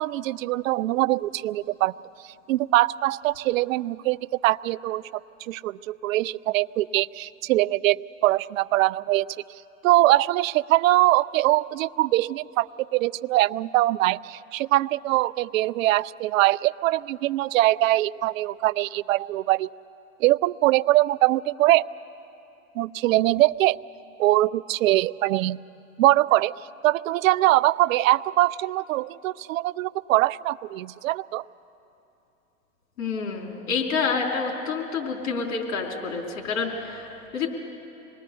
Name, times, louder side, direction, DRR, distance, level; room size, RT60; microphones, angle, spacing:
voice 1, 0.0-1.9 2.5-5.0 5.4-9.3 9.8-19.7 20.2-21.8 22.8-23.8 24.2-25.6 26.0-26.5 26.8-31.4, right 16 dB, 80° right, 17 dB, 0.5 m, -22 dB
voice 2, 33.0-37.5, left 5 dB, 75° left, 1 dB, 4.1 m, -28 dB
25.5 x 19.5 x 6.9 m, 2.9 s
hypercardioid pair, 105°, 40 cm